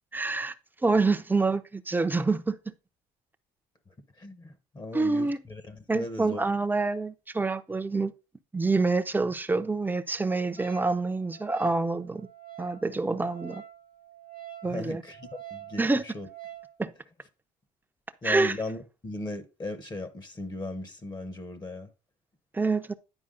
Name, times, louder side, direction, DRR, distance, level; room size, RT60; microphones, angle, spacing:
voice 1, 0.1-0.5 0.8-2.6 4.9-5.4 5.9-8.1 8.5-12.3 12.6-13.6 14.6-15.0 15.8-16.0 16.8-16.9 18.2-18.6 22.5-22.9, right 3 dB, 10° right, 0.6 m, -26 dB
voice 2, 4.2-6.6 14.6-16.3 18.2-21.9, left 2 dB, 25° left, 0.9 m, -38 dB
Wind instrument woodwind instrument, 10.6-16.7, right 11 dB, 80° left, 2.9 m, -47 dB
10.0 x 4.7 x 3.7 m
cardioid pair, 110°, 17 cm